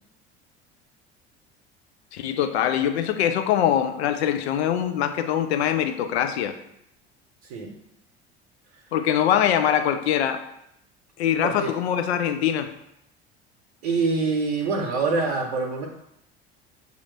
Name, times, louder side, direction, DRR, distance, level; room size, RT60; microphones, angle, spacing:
voice 1, 2.1-6.5 8.9-10.4 11.2-12.7, left 9 dB, 80° left, 8 dB, 0.5 m, -23 dB
voice 2, 11.4-11.7 13.8-15.9, right 4 dB, 75° right, 1 dB, 0.7 m, -25 dB
6.7 x 2.5 x 3.2 m, 0.79 s
hypercardioid pair, 65°, 32 cm